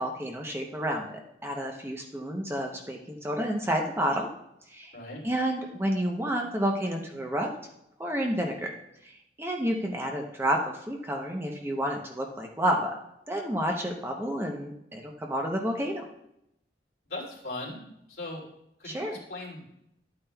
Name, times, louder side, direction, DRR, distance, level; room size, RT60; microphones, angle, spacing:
voice 1, 0.0-4.3 4.7-4.9 5.2-7.5 8.0-8.7 9.4-10.6 10.9-12.9 13.3-16.0 18.8-19.2, equal, 15° right, 1 dB, 0.7 m, -30 dB
voice 2, 17.1-17.8 18.1-18.4 18.8-19.7, left 2 dB, 60° left, -3 dB, 2.8 m, -38 dB
12.0 x 8.8 x 2.3 m, 0.80 s
head